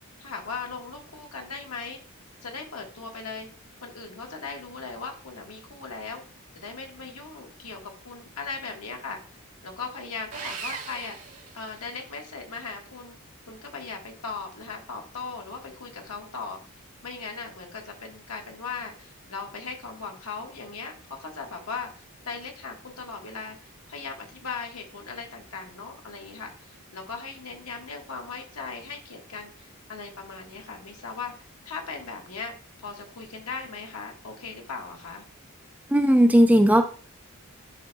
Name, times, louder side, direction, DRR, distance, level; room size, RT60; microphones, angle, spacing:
voice 1, 0.2-2.0 2.4-3.5 3.8-6.2 6.5-9.2 9.6-11.2 11.5-13.2 13.5-16.6 17.0-20.9 21.2-31.3 31.6-35.2, left 4 dB, 80° left, 2 dB, 1.4 m, -38 dB
Sawing, 10.3-12.2, right 5 dB, 80° right, 1.3 m, -39 dB
voice 2, 35.9-36.9, equal, 5° right, 6 dB, 0.4 m, -17 dB
10.5 x 3.9 x 2.3 m, 0.40 s
head